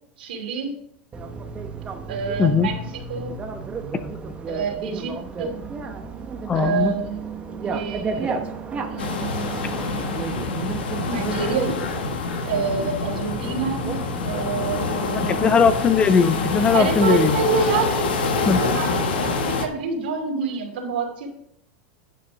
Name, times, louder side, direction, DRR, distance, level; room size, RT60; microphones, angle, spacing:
voice 1, 0.2-0.7 2.1-2.8 3.1-3.3 4.5-5.5 6.5-10.2 11.0-11.8 12.4-14.0 14.2-15.5 16.7-21.3, right 5 dB, 85° right, 2 dB, 2.7 m, -28 dB
Bicycle, 1.1-19.3, right 4 dB, 20° right, 1.1 m, -33 dB
voice 2, 6.5-6.9 15.2-17.4 18.5-18.6, left 5 dB, 20° left, 13 dB, 0.6 m, -19 dB
sound 1, 9.0-19.7, left 4 dB, 85° left, 1.4 m, -26 dB
10.0 x 5.8 x 4.8 m, 0.72 s
supercardioid pair, 130°, 5 cm